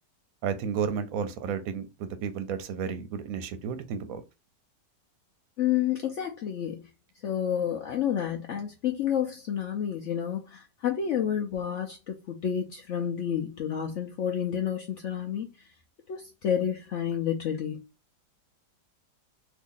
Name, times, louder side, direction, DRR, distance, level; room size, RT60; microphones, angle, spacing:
voice 1, 0.4-4.2, right 7 dB, 65° right, 0.9 m, -32 dB
voice 2, 5.6-6.8 7.2-15.7 16.1-17.8, left 9 dB, 80° left, 0.6 m, -30 dB
2.8 x 2.6 x 3.7 m
omnidirectional pair, 1.8 m